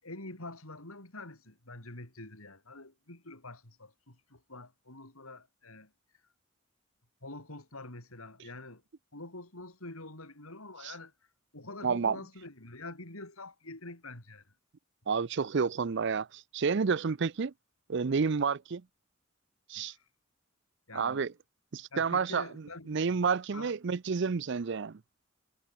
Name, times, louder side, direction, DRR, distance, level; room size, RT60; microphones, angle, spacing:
voice 1, 0.0-5.9 7.2-8.8 9.1-11.1 11.5-14.4 19.8-20.0 20.9-21.3 21.9-23.0 23.5-23.7, left 2 dB, 90° left, 5.9 m, -46 dB
voice 2, 11.8-12.2 15.1-17.5 17.9-18.8 19.7-19.9 20.9-21.3 21.7-22.5 22.9-25.0, right 5 dB, 55° right, 0.5 m, -30 dB
head